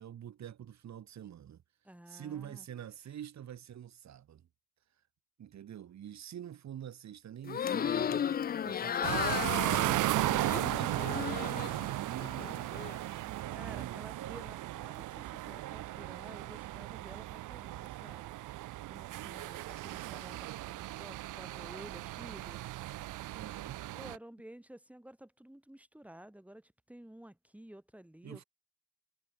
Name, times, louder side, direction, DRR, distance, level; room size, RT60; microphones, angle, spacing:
voice 1, 0.0-1.6 2.1-4.5 5.4-8.2 8.6-9.0 9.4-9.7 10.0-14.5 23.3-23.8 28.2-28.4, right 10 dB, 65° right, 4.5 m, -46 dB
voice 2, 1.8-2.7 8.8-9.6 13.5-18.3 18.9-22.7 23.9-28.5, right 1 dB, 5° right, 6.9 m, -52 dB
sound 1, 7.4-11.9 12.2-13.0, left 8 dB, 30° left, 0.4 m, -35 dB
sound 2, 9.0-24.2, right 16 dB, 90° right, 1.9 m, -36 dB
cardioid pair, 90°, 30 cm